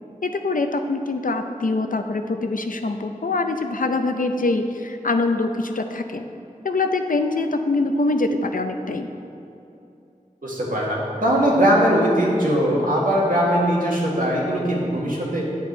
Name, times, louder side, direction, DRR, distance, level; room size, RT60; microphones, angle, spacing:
voice 1, 0.2-6.2 6.6-9.1, left 3 dB, 80° left, 6 dB, 0.6 m, -24 dB
voice 2, 10.4-15.4, equal, 90° right, -5 dB, 2.0 m, -20 dB
9.3 x 7.4 x 4.4 m, 2.8 s
wide cardioid pair, 50°, 14 cm